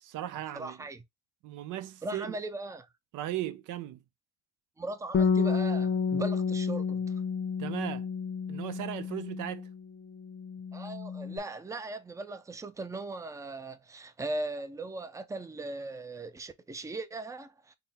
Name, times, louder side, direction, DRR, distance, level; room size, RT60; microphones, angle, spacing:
voice 1, 0.0-0.9 1.4-2.4 3.1-4.0 7.6-8.1 8.5-9.7, right 13 dB, 85° right, 0.6 m, -37 dB
voice 2, 0.5-1.0 2.0-2.9 4.8-7.0 10.7-17.8, right 2 dB, 10° right, 0.5 m, -38 dB
Bass guitar, 5.1-9.8 10.1-11.4, left 5 dB, 40° left, 0.6 m, -30 dB
3.8 x 2.2 x 4.1 m
cardioid pair, 90°, 30 cm